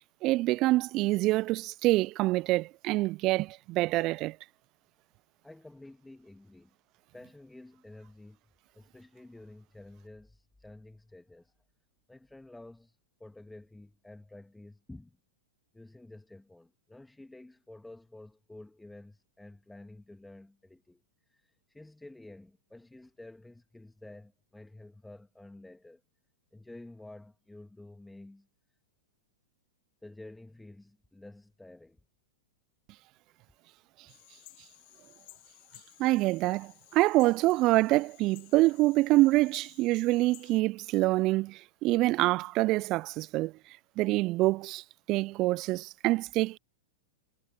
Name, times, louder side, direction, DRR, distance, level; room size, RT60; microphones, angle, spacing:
voice 1, 0.0-4.4 36.0-43.5 44.0-46.6, right 19 dB, 40° right, 0.4 m, -26 dB
voice 2, 5.4-6.7 7.1-8.4 8.8-11.5 12.1-15.2 15.7-21.0 21.3-26.0 26.5-28.5 30.0-32.0, left 2 dB, 5° left, 1.8 m, -51 dB
sound 1, 34.1-40.6, left 29 dB, 50° left, 2.5 m, -56 dB
figure-of-eight pair, 100°, 0 cm